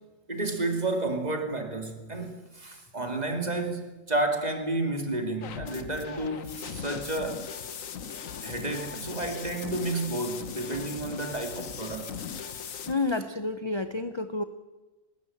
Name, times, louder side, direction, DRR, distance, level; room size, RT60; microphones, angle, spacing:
voice 1, 0.3-7.5 8.4-12.2, right 2 dB, 30° right, 4 dB, 2.6 m, -31 dB
sound 1, 5.4-12.9, left 7 dB, 70° left, 1.5 m, -39 dB
voice 2, 12.9-14.4, left 3 dB, 25° left, 10 dB, 0.7 m, -29 dB
19.5 x 18.5 x 8.6 m, 1.1 s
omnidirectional pair, 1.5 m